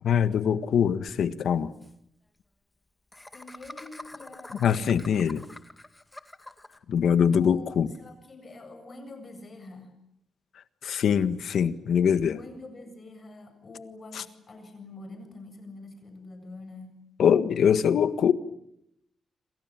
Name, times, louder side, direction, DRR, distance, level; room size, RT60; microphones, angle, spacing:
voice 1, 0.0-1.7 4.6-5.4 6.9-7.9 10.8-12.4 14.1-14.2 17.2-18.3, left 8 dB, 70° left, 1.6 m, -23 dB
Laughter, 1.1-1.2 1.4-1.5 1.7-1.9 3.1-6.8, left 1 dB, 10° left, 2.1 m, -46 dB
voice 2, 3.3-5.2 7.4-10.0 12.3-16.9, left 2 dB, 35° left, 7.9 m, -45 dB
28.0 x 27.0 x 7.6 m
wide cardioid pair, 140°, 0 cm